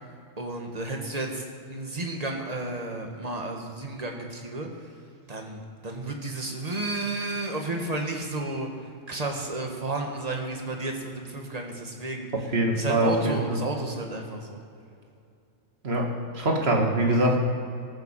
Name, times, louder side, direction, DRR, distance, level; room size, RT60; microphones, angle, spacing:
voice 1, 0.4-1.4 1.7-4.7 5.3-8.7 9.1-12.3 12.8-14.6, right 2 dB, 30° right, 2 dB, 1.8 m, -32 dB
voice 2, 12.5-13.6 15.8-17.4, right 1 dB, 55° right, 1 dB, 2.1 m, -24 dB
19.0 x 7.1 x 7.4 m, 2.5 s
omnidirectional pair, 1.3 m